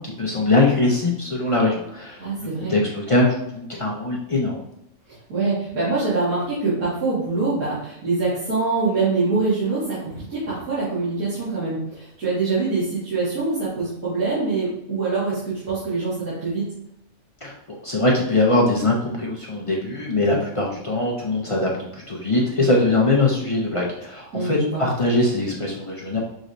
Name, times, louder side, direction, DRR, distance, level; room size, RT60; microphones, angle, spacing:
voice 1, 0.0-4.6 17.4-17.5 17.8-26.2, left 2 dB, 50° left, -3 dB, 0.4 m, -22 dB
voice 2, 2.2-2.8 5.3-16.7 24.3-24.8, right 3 dB, 85° right, -13 dB, 2.3 m, -24 dB
6.2 x 3.0 x 2.6 m, 0.79 s
omnidirectional pair, 1.5 m